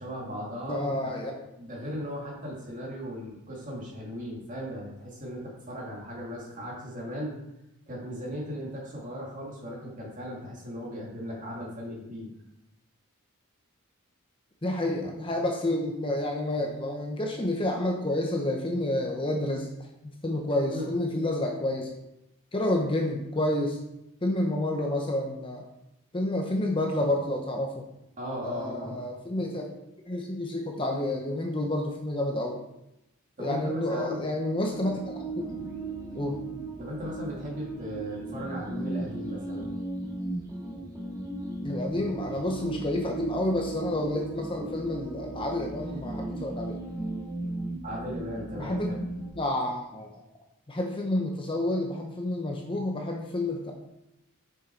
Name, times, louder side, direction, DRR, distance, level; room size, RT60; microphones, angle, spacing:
voice 1, 0.0-7.4 7.9-12.3 20.7-20.9 28.2-29.0 33.4-34.3 36.8-39.7 47.8-48.8, equal, 35° right, -3 dB, 2.1 m, -37 dB
voice 2, 0.7-1.3 14.6-19.7 20.2-21.9 22.5-23.8 24.2-25.6 26.1-27.8 28.4-29.7 30.1-32.6 33.4-35.2 35.5-35.7 36.2-36.4 41.6-46.8 48.6-48.9 49.2-50.1 50.7-53.7, left 1 dB, 25° left, 1 dB, 0.7 m, -29 dB
sound 1, 34.5-49.3, right 2 dB, 15° right, 2.0 m, -36 dB
6.5 x 6.3 x 4.5 m, 0.87 s
head